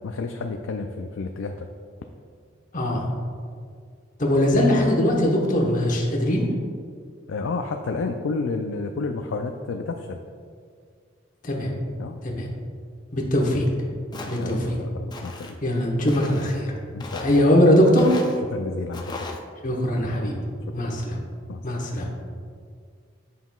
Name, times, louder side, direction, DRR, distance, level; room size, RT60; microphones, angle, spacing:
voice 1, 0.0-1.7 7.3-10.2 12.0-12.2 14.4-15.5 16.9-17.4 18.5-19.3 20.8-20.9 21.5-21.6, left 3 dB, 80° left, 5 dB, 0.4 m, -31 dB
voice 2, 2.7-3.1 4.2-6.5 11.4-11.7 12.2-12.5 13.1-13.7 14.3-14.7 15.6-16.7 17.2-18.2 19.6-20.4 20.7-21.2 21.6-22.1, left 1 dB, 45° left, -1 dB, 1.0 m, -21 dB
Walk footsteps, 14.1-14.6 15.1-15.5 16.1-16.6 17.0-17.4 18.0-18.4 18.9-19.4, left 2 dB, 20° left, 0.4 m, -36 dB
9.3 x 5.5 x 2.3 m, 2.1 s
head